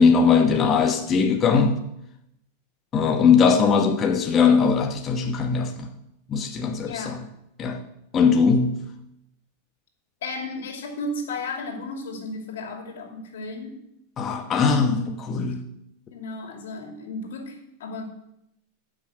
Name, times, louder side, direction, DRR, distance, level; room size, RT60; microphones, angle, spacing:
voice 1, 0.0-1.8 2.9-5.9 6.3-7.2 7.6-7.8 8.1-8.8 14.2-15.0 15.3-15.7, left 5 dB, 25° left, 4 dB, 1.0 m, -20 dB
voice 2, 6.8-7.2 10.2-13.8 14.7-15.4 16.1-18.0, left 3 dB, 85° left, 4 dB, 2.6 m, -34 dB
13.5 x 6.2 x 6.3 m, 0.82 s
supercardioid pair, 140°, 0 cm